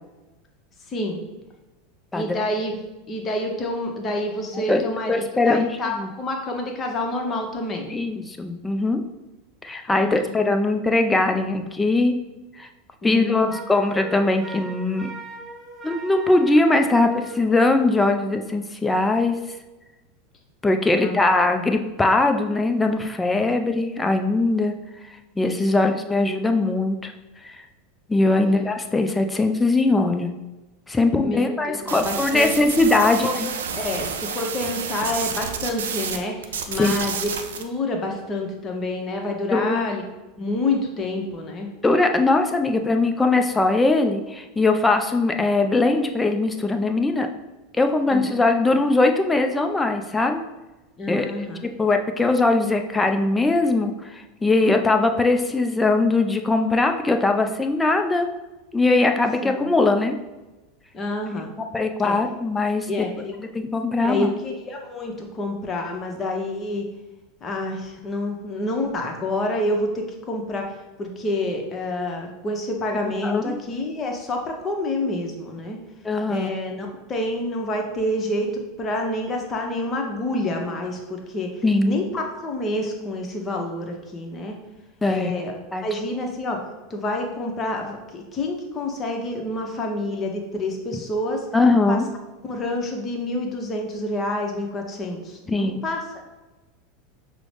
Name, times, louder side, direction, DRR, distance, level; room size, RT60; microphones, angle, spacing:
voice 1, 0.9-1.2 2.1-2.8 3.1-7.9 9.9-10.2 13.0-13.5 21.0-21.2 28.4-28.7 31.2-32.5 33.0-33.4 33.8-37.3 37.6-40.0 40.4-41.7 48.1-48.4 51.0-51.6 59.4-59.7 60.9-61.5 62.0-62.2 62.9-63.3 64.0-66.8 67.4-70.6 71.0-75.8 76.3-81.5 81.8-84.5 85.1-85.5 85.8-86.6 86.9-91.5 91.9-92.0 92.4-96.0, left 1 dB, 30° left, 2 dB, 0.8 m, -28 dB
voice 2, 2.1-2.4 4.5-4.8 5.1-6.1 7.9-9.0 9.6-12.1 12.6-12.7 13.0-15.1 15.8-19.4 20.6-24.7 25.4-27.1 27.4-27.6 28.1-30.3 30.9-33.5 36.8-36.9 39.5-39.9 41.8-47.3 47.8-50.4 51.1-58.3 58.7-60.2 61.7-63.1 63.4-64.3 73.2-73.6 76.0-76.5 81.6-82.0 85.0-85.4 85.7-86.0 91.5-92.1 95.5-95.8, left 2 dB, 10° left, 5 dB, 0.4 m, -21 dB
Wind instrument woodwind instrument, 13.5-17.4, right 2 dB, 20° right, 1.0 m, -40 dB
sound 1, 31.9-36.2 36.4-37.6, right 6 dB, 70° right, 0.4 m, -30 dB
6.0 x 2.1 x 3.2 m, 1.1 s
figure-of-eight pair, 85°, 0 cm